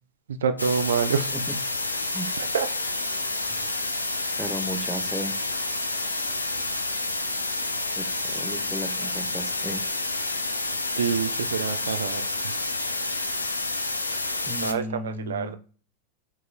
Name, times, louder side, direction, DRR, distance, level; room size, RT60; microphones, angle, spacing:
voice 1, 0.3-1.3 2.4-2.7 11.0-12.6 14.6-15.6, right 6 dB, 70° right, 10 dB, 0.3 m, -27 dB
sound 1, 0.6-14.7, left 2 dB, 90° left, 0.4 m, -29 dB
voice 2, 4.4-5.4 8.0-9.8 14.5-15.6, equal, ahead, 6 dB, 0.7 m, -34 dB
5.4 x 2.9 x 2.4 m, 0.39 s
figure-of-eight pair, 90°, 0 cm